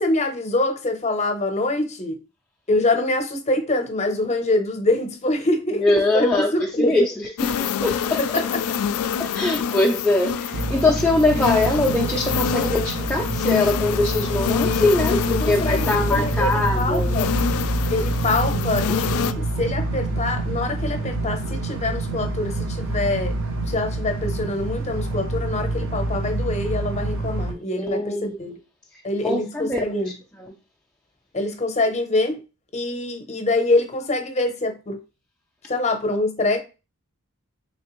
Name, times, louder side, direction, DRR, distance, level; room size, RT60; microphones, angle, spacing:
voice 1, 0.0-2.2 2.7-7.1 8.2-8.6 15.4-17.4 17.9-23.4 23.7-28.6 29.0-30.1 31.3-32.4 32.7-35.0 35.7-36.6, left 2 dB, 30° left, 0.7 m, -24 dB
voice 2, 5.8-6.5 6.8-8.2 9.2-17.1 27.8-28.4 29.2-29.9, left 2 dB, 5° left, 0.4 m, -22 dB
sound 1, 7.4-19.3, left 8 dB, 85° left, 0.3 m, -27 dB
sound 2, 10.5-27.5, right 2 dB, 60° right, 0.7 m, -27 dB
3.4 x 3.3 x 3.0 m
head